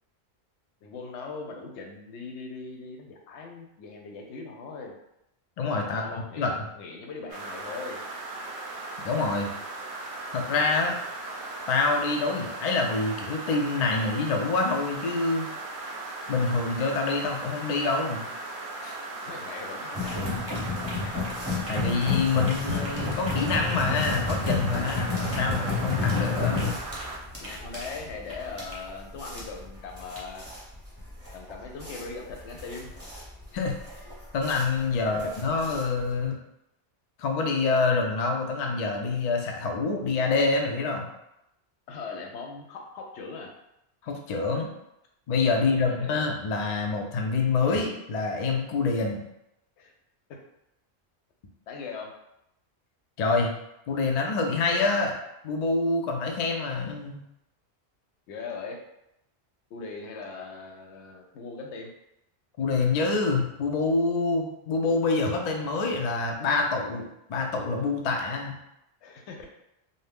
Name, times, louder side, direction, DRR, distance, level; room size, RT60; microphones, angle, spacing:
voice 1, 0.8-4.9 5.8-8.0 19.2-20.3 21.0-21.2 27.4-30.4 31.3-32.9 35.0-35.2 41.9-43.5 45.5-46.2 49.8-49.9 51.7-52.1 58.3-58.8 59.7-61.9 69.0-69.5, left 4 dB, 85° left, 1 dB, 0.9 m, -40 dB
voice 2, 5.6-6.0 6.4-6.6 9.0-9.5 10.3-11.0 11.7-15.5 16.3-18.3 18.8-19.0 21.7-26.6 33.5-33.7 34.3-36.4 37.2-41.1 44.0-44.7 45.3-49.2 53.2-53.5 53.9-55.2 55.4-57.2 62.6-68.6, left 3 dB, 55° left, 2 dB, 0.4 m, -26 dB
sound 1, 7.3-27.2, right 2 dB, 55° right, 0.7 m, -38 dB
sound 2, 19.9-36.2, left 3 dB, 15° right, 0.7 m, -31 dB
2.7 x 2.0 x 3.3 m, 0.83 s
omnidirectional pair, 1.1 m